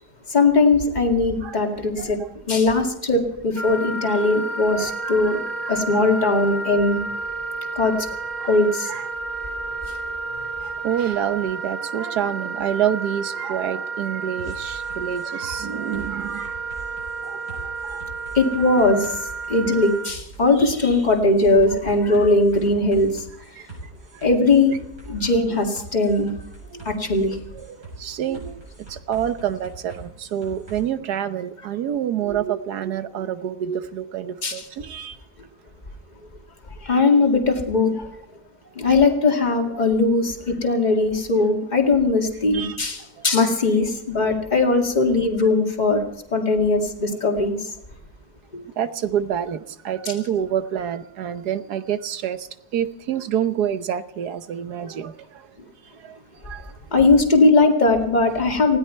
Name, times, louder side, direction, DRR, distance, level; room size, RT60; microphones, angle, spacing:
voice 1, 0.3-2.2 2.5-5.4 5.7-7.0 7.8-8.0 8.5-8.9 18.3-19.2 19.5-23.3 24.2-24.7 25.1-26.3 26.9-27.4 34.4-34.6 36.8-38.1 38.8-46.0 46.3-47.7 56.9-58.8, left 3 dB, 25° left, 2 dB, 2.2 m, -19 dB
Wind instrument woodwind instrument, 3.5-20.1, right 3 dB, 25° right, 2.0 m, -31 dB
voice 2, 4.8-5.8 8.4-8.6 8.9-9.1 10.6-16.9 17.2-18.0 23.6-24.3 26.7-26.9 27.2-35.2 39.7-39.9 42.5-42.8 43.2-43.3 47.4-47.5 48.8-55.5 55.8-57.0, right 9 dB, 85° right, 12 dB, 1.5 m, -28 dB
sound 1, 14.4-30.8, right 3 dB, 65° right, 8.2 m, -42 dB
20.0 x 16.5 x 4.5 m, 0.78 s
omnidirectional pair, 1.7 m